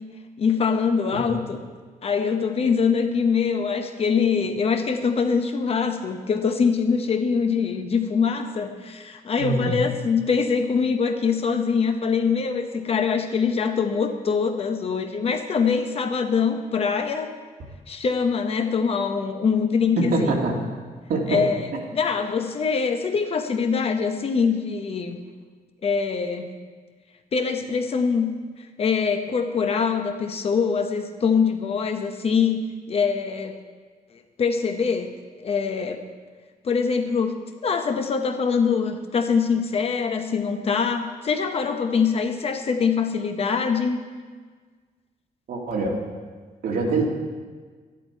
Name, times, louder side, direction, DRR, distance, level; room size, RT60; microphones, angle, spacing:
voice 1, 0.4-1.6 2.0-17.3 17.9-20.3 21.3-25.2 25.8-26.5 27.3-28.3 28.8-32.6 32.9-33.6 34.4-35.1 35.4-36.0 36.6-37.3 37.6-44.0, left 5 dB, 40° left, 7 dB, 0.8 m, -23 dB
voice 2, 9.4-9.7 20.0-20.6 21.1-21.5 45.5-46.0 46.6-47.0, right 3 dB, 70° right, -1 dB, 2.3 m, -24 dB
12.5 x 11.0 x 4.5 m, 1.5 s
wide cardioid pair, 180°, 16 cm